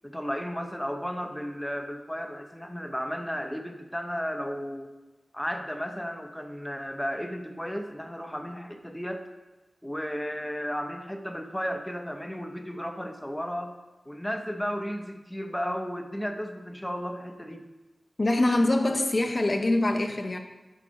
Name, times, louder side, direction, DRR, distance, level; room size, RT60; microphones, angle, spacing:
voice 1, 0.0-4.9 5.3-9.3 9.8-13.8 14.1-17.6, equal, 5° left, 0.8 m, -34 dB
voice 2, 18.2-20.4, left 2 dB, 40° left, 0.8 m, -24 dB
11.0 x 4.1 x 5.2 m
wide cardioid pair, 75°, 0 cm